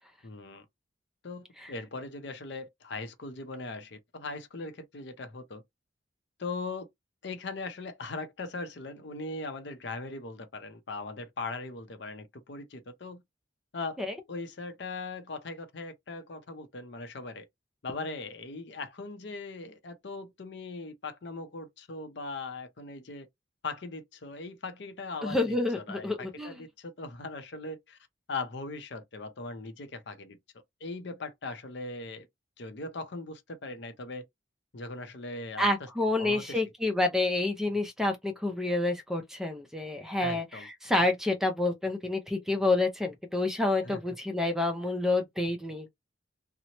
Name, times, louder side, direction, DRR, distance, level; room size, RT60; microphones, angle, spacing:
voice 1, 0.2-0.6 1.2-5.6 6.4-6.9 7.2-13.2 13.7-14.0 14.3-17.5 17.8-23.3 23.6-28.0 28.3-30.4 30.8-32.3 32.6-34.2 34.7-35.9 36.2-36.9 40.2-40.7 43.8-44.0, left 3 dB, 60° left, 0.6 m, -39 dB
voice 2, 25.2-26.6 35.6-45.9, left 2 dB, ahead, 0.4 m, -28 dB
2.9 x 2.0 x 2.8 m
head